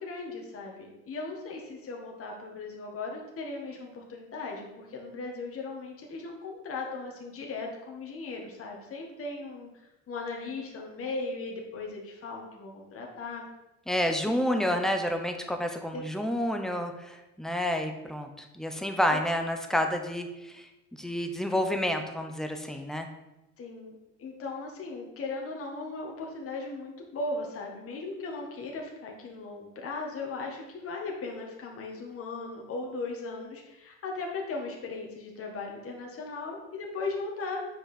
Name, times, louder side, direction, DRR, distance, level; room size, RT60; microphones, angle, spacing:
voice 1, 0.0-9.7 10.1-13.5 14.2-14.9 15.9-16.0 19.1-19.2 23.6-37.6, left 3 dB, 35° left, 0 dB, 1.7 m, -37 dB
voice 2, 13.9-23.1, equal, ahead, 5 dB, 1.0 m, -29 dB
7.7 x 5.1 x 4.3 m, 0.96 s
hypercardioid pair, 80°, 37 cm